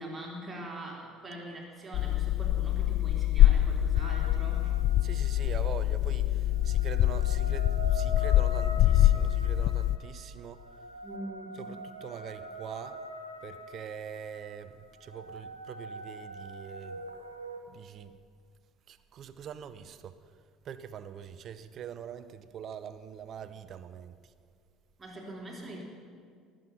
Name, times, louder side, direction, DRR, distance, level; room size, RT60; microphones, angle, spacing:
voice 1, 0.0-4.8 11.0-11.7 25.0-25.8, right 1 dB, 20° right, 3.2 m, -43 dB
sound 1, 1.9-10.0, left 13 dB, 50° left, 0.3 m, -25 dB
sound 2, 4.0-5.6 6.5-17.6, left 1 dB, 90° right, 0.8 m, -43 dB
voice 2, 5.0-10.6 11.6-13.1 13.4-17.0 17.7-18.2 18.9-20.2 20.6-24.2, right 8 dB, 45° right, 0.7 m, -43 dB
19.5 x 7.8 x 5.8 m
figure-of-eight pair, 60°, 0 cm